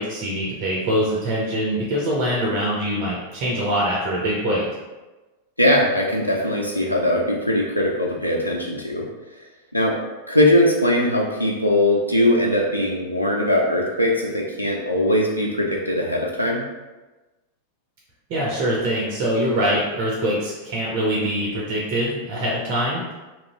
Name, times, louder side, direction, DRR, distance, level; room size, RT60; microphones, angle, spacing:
voice 1, 0.0-4.7 18.3-23.0, equal, 45° right, -4 dB, 0.6 m, -23 dB
voice 2, 5.6-9.1 9.7-10.0 10.3-16.7, left 1 dB, 90° right, -1 dB, 0.4 m, -20 dB
3.0 x 2.6 x 2.9 m, 1.2 s
figure-of-eight pair, 90°, 0 cm